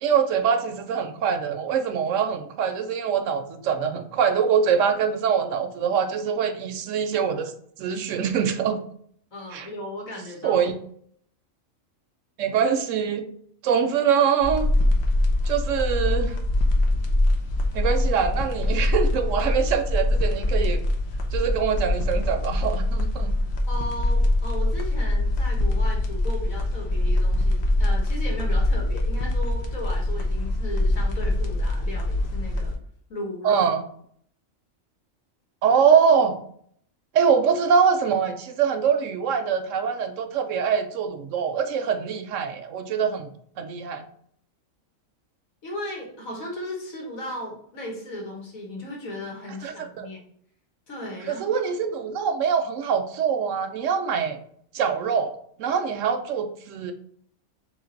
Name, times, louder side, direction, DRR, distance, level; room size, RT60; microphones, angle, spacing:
voice 1, 0.0-7.5 7.8-8.8 9.5-9.7 10.4-10.7 12.4-13.2 13.6-14.7 15.5-16.4 17.7-20.8 21.3-23.3 33.4-33.8 35.6-36.4 37.1-43.3 43.6-44.1 49.6-50.1 51.3-54.4 54.7-56.9, right 7 dB, 75° right, 7 dB, 0.9 m, -23 dB
voice 2, 9.3-10.6 23.7-32.7 33.1-33.7 45.6-50.2 50.9-51.5, left 1 dB, 80° left, -2 dB, 1.8 m, -36 dB
sound 1, 14.4-32.7, left 1 dB, 60° left, 0.9 m, -23 dB
3.5 x 3.1 x 3.9 m, 0.64 s
omnidirectional pair, 1.4 m